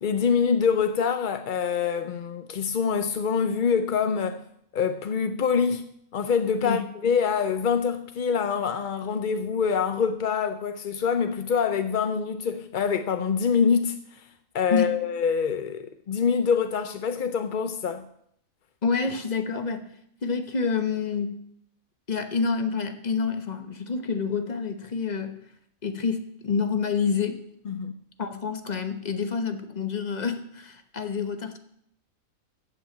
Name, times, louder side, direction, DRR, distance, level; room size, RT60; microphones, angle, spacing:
voice 1, 0.0-4.4 4.7-14.2 14.5-18.1 27.7-27.9, left 6 dB, 60° left, 0.5 m, -25 dB
voice 2, 18.8-19.8 20.2-21.4 22.1-25.4 25.8-27.4 28.2-31.6, left 5 dB, 35° left, 1.1 m, -28 dB
14.0 x 5.9 x 8.8 m
omnidirectional pair, 1.5 m